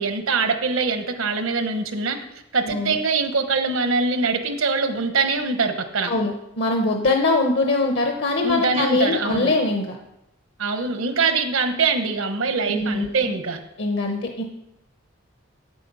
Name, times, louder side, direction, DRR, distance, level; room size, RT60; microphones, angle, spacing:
voice 1, 0.0-2.2 2.5-6.1 8.4-9.5 10.6-13.6, right 4 dB, 80° right, 8 dB, 1.0 m, -23 dB
voice 2, 2.7-3.0 6.1-10.0 12.7-13.1 13.8-14.4, left 2 dB, 60° left, 3 dB, 0.8 m, -22 dB
8.4 x 8.2 x 5.4 m, 0.88 s
head